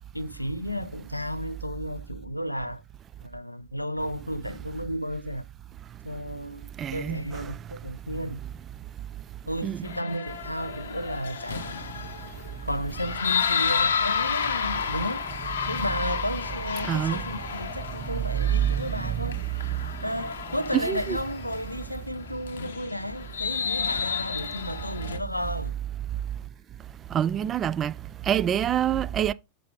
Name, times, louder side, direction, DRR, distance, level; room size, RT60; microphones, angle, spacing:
voice 1, 0.1-2.8 3.2-5.5 6.0-8.4 9.5-11.8 12.6-15.3 15.7-19.4 20.0-25.8, equal, 85° left, 0.4 m, -33 dB
voice 2, 6.8-7.2 9.6-9.9 16.9-17.2 18.6-19.1 20.7-21.2 27.1-27.9 28.3-29.3, right 10 dB, 25° right, 0.3 m, -26 dB
sound 1, 9.8-25.2, left 6 dB, 65° left, 0.8 m, -31 dB
6.3 x 5.9 x 3.7 m
figure-of-eight pair, 90°, 0 cm